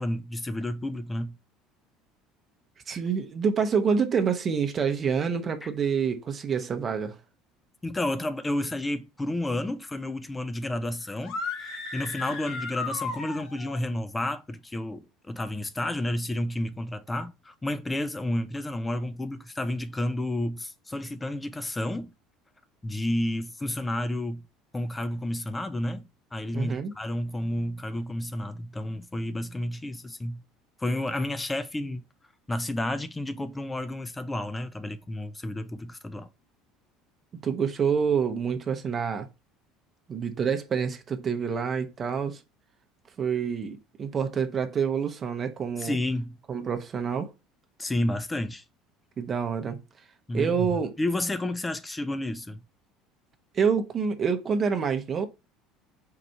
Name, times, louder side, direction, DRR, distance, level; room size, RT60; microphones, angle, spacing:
voice 1, 0.0-1.4 5.6-5.7 7.8-22.1 22.8-24.4 24.7-26.0 26.3-30.4 30.8-32.0 32.5-36.3 45.8-46.4 47.8-48.6 50.3-50.7 51.0-52.6, left 1 dB, 15° left, 0.5 m, -31 dB
voice 2, 2.9-7.1 26.5-26.9 37.4-39.3 40.1-42.4 43.2-46.0 46.5-47.3 49.2-49.8 50.3-50.9 53.5-55.3, right 6 dB, 35° right, 0.8 m, -27 dB
sound 1, 11.2-13.8, left 4 dB, 60° left, 1.0 m, -35 dB
4.7 x 2.5 x 4.2 m
hypercardioid pair, 65°, 0 cm